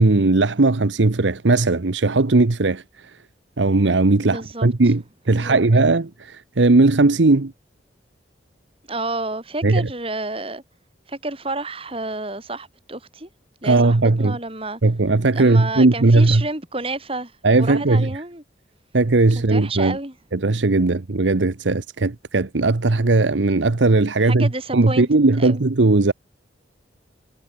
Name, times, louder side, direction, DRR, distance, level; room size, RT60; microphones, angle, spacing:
voice 1, 0.0-2.8 3.6-7.5 9.6-9.9 13.6-14.4 14.8-16.4 17.4-18.1 18.9-20.0 20.3-26.1, right 2 dB, 85° right, 0.9 m, -18 dB
voice 2, 4.2-4.7 5.3-5.6 8.9-10.6 11.1-13.3 13.6-14.8 15.3-17.3 17.6-18.4 19.5-20.1 24.2-25.7, right 2 dB, 30° right, 5.7 m, -30 dB
head